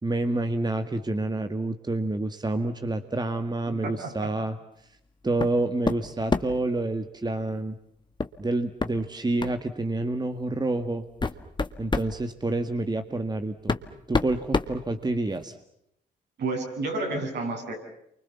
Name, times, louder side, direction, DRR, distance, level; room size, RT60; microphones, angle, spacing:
voice 1, 0.0-4.6 5.2-7.8 8.4-11.0 11.8-13.8 14.1-15.6, right 2 dB, 25° right, 8 dB, 1.8 m, -28 dB
voice 2, 3.7-4.1 16.4-17.8, right 2 dB, 70° right, 1 dB, 7.9 m, -30 dB
sound 1, 5.4-5.6 5.9-6.7 8.2-8.4 8.8-8.9 9.4-9.6 10.4-10.5 11.0-12.1 13.2-13.3 13.7-15.4, left 3 dB, 25° left, 1.7 m, -28 dB
29.0 x 24.5 x 7.1 m, 0.76 s
supercardioid pair, 60°, 18 cm